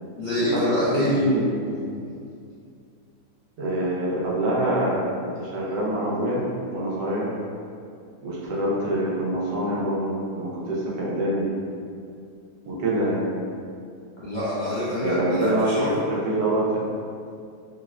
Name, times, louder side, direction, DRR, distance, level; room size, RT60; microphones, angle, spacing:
voice 1, 0.2-1.2 14.2-16.0, left 1 dB, 75° left, -12 dB, 0.4 m, -26 dB
voice 2, 0.9-1.9 3.6-5.0 5.4-6.4 6.7-7.3 8.2-11.5 12.7-13.2 15.0-16.8, right 1 dB, 90° right, -6 dB, 1.4 m, -25 dB
3.8 x 2.0 x 2.4 m, 2.3 s
omnidirectional pair, 1.8 m